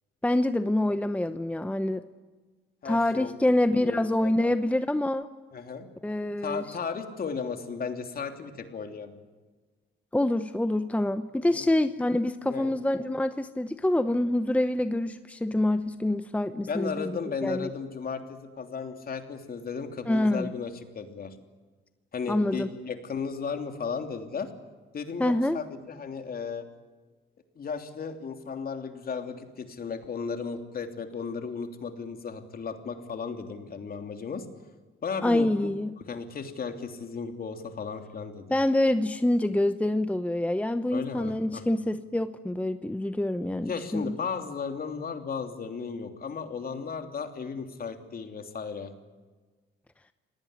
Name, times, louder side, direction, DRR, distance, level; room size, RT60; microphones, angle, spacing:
voice 1, 0.2-2.0 2.8-5.3 6.0-6.8 10.1-17.2 17.4-17.7 20.1-20.5 22.3-22.7 25.2-25.6 35.2-35.9 38.5-44.2, left 1 dB, 5° left, 11 dB, 0.8 m, -26 dB
voice 2, 2.8-3.3 3.7-4.5 5.5-5.9 6.4-9.2 11.5-11.6 12.4-12.7 16.6-21.3 22.1-24.5 24.9-26.7 27.6-34.4 35.0-35.5 36.0-38.5 40.9-41.6 43.6-48.9, left 5 dB, 50° left, 6 dB, 3.1 m, -35 dB
26.5 x 19.0 x 9.8 m, 1.3 s
cardioid pair, 90°, 20 cm